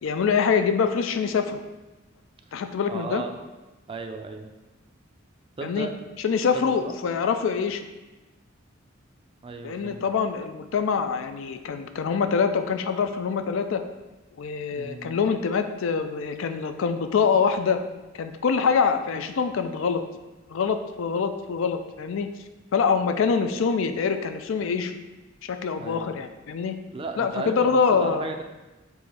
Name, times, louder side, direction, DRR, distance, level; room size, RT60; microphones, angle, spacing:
voice 1, 0.0-1.6 2.5-3.2 5.6-5.9 6.2-7.9 9.6-13.8 14.4-17.8 18.1-20.0 20.5-22.3 22.7-24.9 25.4-26.8 27.2-28.3, left 6 dB, 70° left, 8 dB, 0.4 m, -25 dB
voice 2, 2.9-3.3 3.9-4.5 5.6-5.9 6.5-7.0 9.4-10.0 14.7-15.2 25.8-26.2 26.9-28.4, right 3 dB, 25° right, 5 dB, 0.4 m, -35 dB
4.7 x 2.6 x 4.2 m, 1.1 s
head